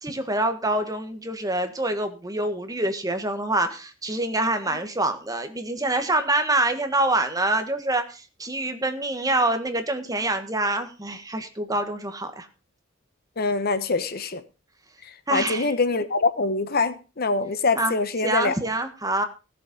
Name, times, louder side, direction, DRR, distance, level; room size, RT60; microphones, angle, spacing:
voice 1, 0.0-12.5 15.3-15.7 17.7-18.0 18.2-19.2, right 2 dB, 20° right, 7 dB, 1.6 m, -26 dB
voice 2, 13.4-14.4 15.3-18.5, left 3 dB, 50° left, 12 dB, 1.0 m, -24 dB
16.5 x 7.4 x 5.2 m, 0.32 s
head